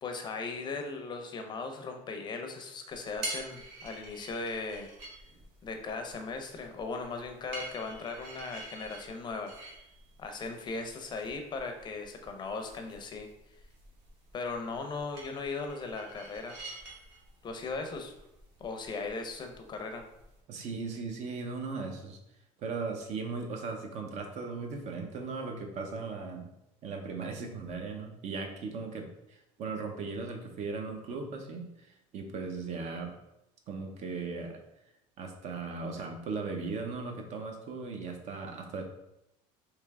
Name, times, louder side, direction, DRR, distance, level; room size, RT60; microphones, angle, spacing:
voice 1, 0.0-4.9 5.6-9.5 10.2-13.3 14.3-16.6 17.4-18.1 18.6-20.0, left 4 dB, 30° left, 5 dB, 0.5 m, -38 dB
sound 1, 2.9-20.4, right 1 dB, 90° right, 1.0 m, -48 dB
voice 2, 20.5-22.2 22.6-26.5 26.8-33.1 33.7-34.6 35.2-38.8, right 4 dB, 50° right, 4 dB, 0.6 m, -38 dB
3.3 x 2.9 x 3.4 m, 0.85 s
cardioid pair, 125°, 15 cm